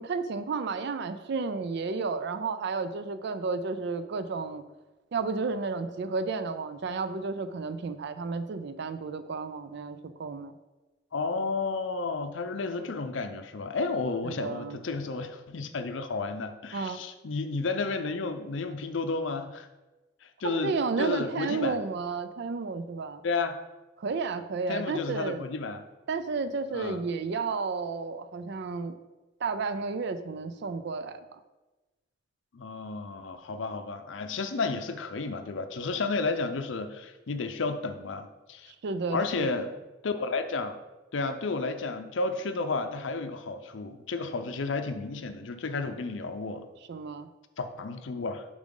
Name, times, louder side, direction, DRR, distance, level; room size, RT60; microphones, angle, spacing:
voice 1, 0.0-4.6 5.1-10.5 14.2-14.8 16.7-17.0 20.4-23.2 24.0-25.4 26.1-28.9 29.4-31.2 38.8-39.7 46.9-47.3, right 4 dB, 60° right, 12 dB, 0.4 m, -32 dB
voice 2, 11.1-19.7 20.2-21.8 23.2-23.6 24.7-25.8 26.7-27.0 32.5-38.7 39.1-39.7 40.0-40.8 41.1-46.7 47.6-48.5, left 3 dB, 70° left, 8 dB, 0.6 m, -32 dB
7.1 x 5.1 x 3.8 m, 1.1 s
head